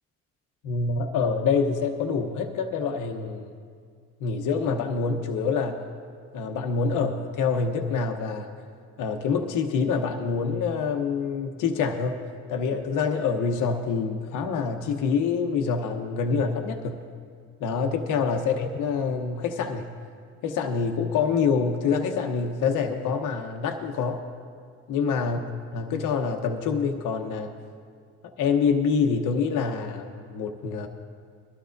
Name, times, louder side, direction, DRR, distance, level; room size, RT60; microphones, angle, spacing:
voice 1, 0.6-3.5 4.2-5.8 6.3-8.5 9.0-12.2 12.5-17.0 17.6-19.9 20.4-24.2 24.9-25.4 25.7-27.5 28.4-30.9, left 5 dB, 90° left, 4 dB, 0.9 m, -26 dB
21.5 x 12.5 x 2.6 m, 2.2 s
cardioid pair, 90°, 30 cm